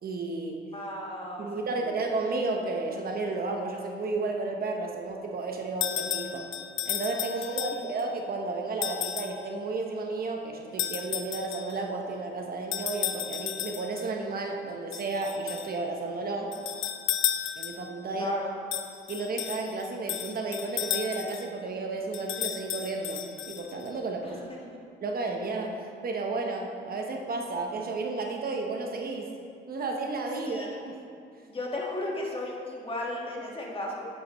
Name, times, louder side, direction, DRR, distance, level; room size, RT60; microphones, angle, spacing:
voice 1, 0.0-0.6 1.4-6.4 6.8-16.5 17.6-18.3 19.1-24.4 25.0-29.3 29.7-31.0, right 3 dB, 50° right, 2 dB, 1.0 m, -32 dB
voice 2, 0.7-1.5 7.5-7.8 18.1-18.6 24.2-24.6 30.4-30.7 31.5-34.1, left 1 dB, 25° left, -2 dB, 1.7 m, -35 dB
sound 1, 5.8-8.0 8.8-9.4 10.8-11.8 12.7-14.1 14.9-15.7 16.5-18.0 18.7-21.5 22.1-23.9, left 11 dB, 80° left, 0.5 m, -33 dB
9.7 x 8.6 x 3.1 m, 2.4 s
cardioid pair, 90°, 20 cm